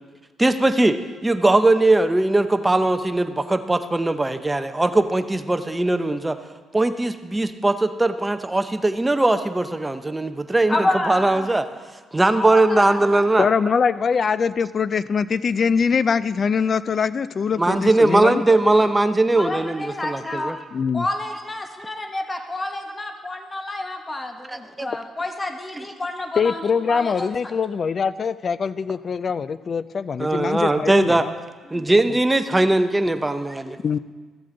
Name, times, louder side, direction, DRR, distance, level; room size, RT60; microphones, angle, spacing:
voice 1, 0.4-1.0 1.2-6.4 6.7-11.6 12.1-13.5 17.6-20.6 24.5-24.9 25.8-25.9 30.2-31.3 31.7-33.8, right 2 dB, 15° right, 9 dB, 0.6 m, -20 dB
voice 2, 10.7-11.5 12.3-13.0 19.3-20.5 20.9-27.3 31.7-31.9, left 2 dB, 25° left, 5 dB, 1.0 m, -29 dB
voice 3, 13.4-18.4 20.7-21.1 26.4-31.3 33.8-34.0, left 6 dB, 45° left, 16 dB, 0.3 m, -23 dB
14.0 x 7.6 x 3.8 m, 1.4 s
cardioid pair, 90°, 0 cm